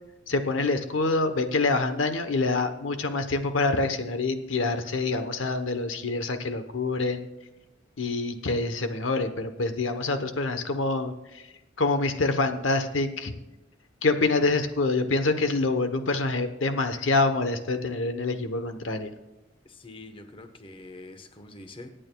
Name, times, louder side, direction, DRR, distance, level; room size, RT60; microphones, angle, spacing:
voice 1, 0.3-7.3 8.0-11.4 11.8-13.3 14.0-19.1, left 3 dB, 80° left, 9 dB, 0.9 m, -26 dB
voice 2, 19.6-21.9, left 2 dB, 25° left, 7 dB, 1.0 m, -45 dB
24.5 x 8.8 x 2.3 m, 1.0 s
head